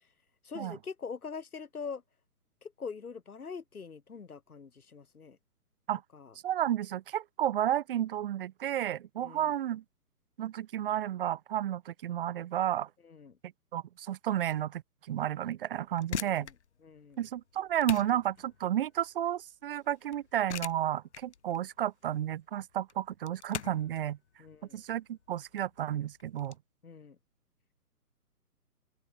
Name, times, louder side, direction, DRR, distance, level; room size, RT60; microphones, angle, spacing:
voice 1, 0.4-2.0 2.6-5.4 6.1-6.3 9.2-9.5 13.0-13.4 16.2-16.5 16.8-17.2 24.4-24.8 26.8-27.2, left 5 dB, 65° left, 2.7 m, -43 dB
voice 2, 6.4-9.8 10.4-12.9 13.7-14.8 15.1-16.5 17.2-24.2 24.7-26.5, right 11 dB, 35° right, 3.7 m, -32 dB
sound 1, 15.8-26.6, left 8 dB, 45° left, 1.6 m, -43 dB
open air
figure-of-eight pair, 140°, 47 cm